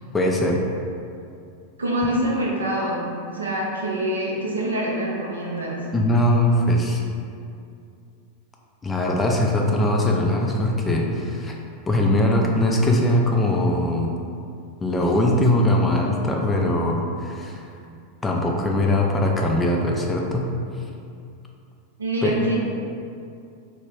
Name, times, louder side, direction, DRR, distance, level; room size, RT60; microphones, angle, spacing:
voice 1, 0.1-0.6 5.9-7.0 8.8-11.5 11.9-14.1 14.8-17.6 18.2-20.5 22.2-22.4, left 1 dB, 15° left, 0 dB, 0.3 m, -21 dB
voice 2, 1.8-5.9 22.0-22.7, right 1 dB, 75° right, -3 dB, 0.4 m, -25 dB
2.3 x 2.1 x 3.3 m, 2.5 s
figure-of-eight pair, 90°, 0 cm